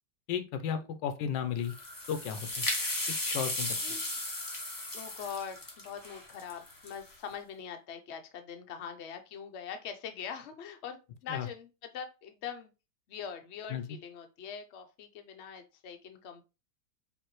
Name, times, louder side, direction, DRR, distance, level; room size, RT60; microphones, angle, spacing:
voice 1, 0.3-1.7 2.1-2.7 3.2-4.0 11.3-11.5 13.7-13.8, left 8 dB, 85° left, 9 dB, 1.4 m, -34 dB
sound 1, 1.6-7.1, left 2 dB, 25° left, 0.5 m, -35 dB
voice 2, 4.9-12.7 13.1-16.5, left 7 dB, 55° left, 6 dB, 0.8 m, -43 dB
5.3 x 3.0 x 3.1 m, 0.29 s
omnidirectional pair, 1.9 m